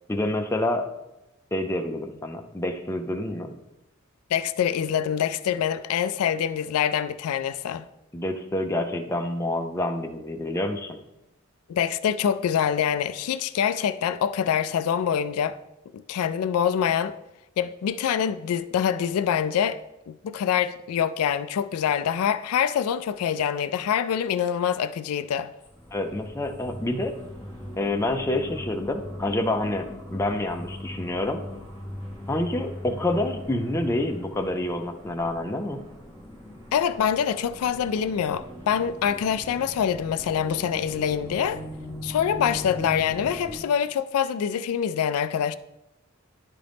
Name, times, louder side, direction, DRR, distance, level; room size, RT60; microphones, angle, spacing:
voice 1, 0.1-0.9 1.5-3.5 8.1-11.0 25.9-27.1 27.8-31.4 32.3-35.8, left 1 dB, 10° left, 0.5 m, -28 dB
voice 2, 4.3-7.8 11.7-15.6 15.9-17.1 17.6-19.8 20.1-25.5 36.7-41.6 42.0-45.5, left 8 dB, 80° left, 0.3 m, -25 dB
sound 1, 25.6-43.6, equal, 15° right, 1.7 m, -40 dB
11.0 x 3.8 x 3.4 m
head